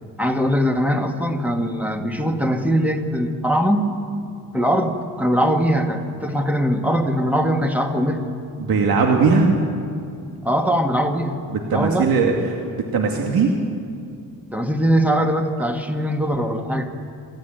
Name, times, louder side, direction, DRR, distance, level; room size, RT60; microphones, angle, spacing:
voice 1, 0.2-3.9 4.5-8.3 10.4-11.4 11.7-12.1 14.5-16.9, equal, 5° right, 4 dB, 1.5 m, -21 dB
voice 2, 8.6-9.6 11.5-12.6 12.9-13.5, right 4 dB, 90° right, 1 dB, 2.2 m, -19 dB
27.5 x 13.0 x 9.1 m, 2.4 s
wide cardioid pair, 150°, 35 cm